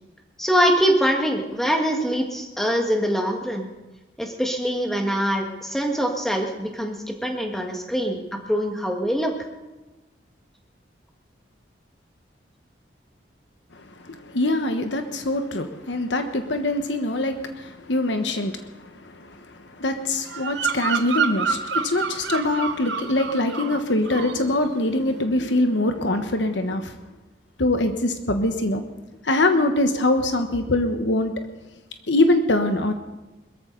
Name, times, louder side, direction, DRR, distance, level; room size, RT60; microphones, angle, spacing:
voice 1, 0.4-3.7 4.2-9.3, equal, ahead, 2 dB, 1.7 m, -23 dB
voice 2, 13.7-26.9 27.6-28.8 29.2-31.3 32.1-32.9, left 2 dB, 80° left, 7 dB, 1.3 m, -23 dB
Bird vocalization bird call bird song, 20.3-23.8 24.1-24.5, right 6 dB, 80° right, 0.9 m, -28 dB
21.5 x 14.0 x 4.0 m, 1.1 s
head